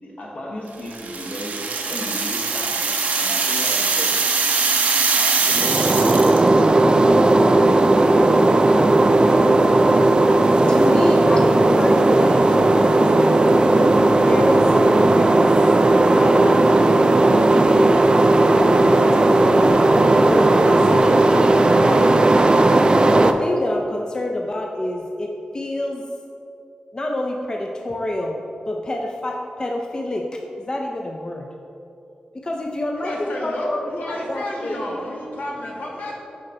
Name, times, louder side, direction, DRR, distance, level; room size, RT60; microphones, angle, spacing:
voice 1, 0.0-4.3 5.1-7.1 8.0-8.3 9.1-10.2, equal, 60° left, -2 dB, 1.1 m, -35 dB
sound 1, 0.9-6.5, right 4 dB, 90° right, 0.6 m, -22 dB
sound 2, 5.5-23.3, right 2 dB, 35° right, 0.3 m, -15 dB
voice 2, 10.7-15.5 16.1-18.1 18.5-21.5 21.8-22.1 23.2-26.0 26.9-31.5 32.3-34.8, left 1 dB, 30° left, 1 dB, 0.4 m, -27 dB
voice 3, 33.0-36.2, left 1 dB, 85° left, -2 dB, 0.8 m, -31 dB
5.8 x 4.4 x 3.8 m, 2.8 s
wide cardioid pair, 75°, 3 cm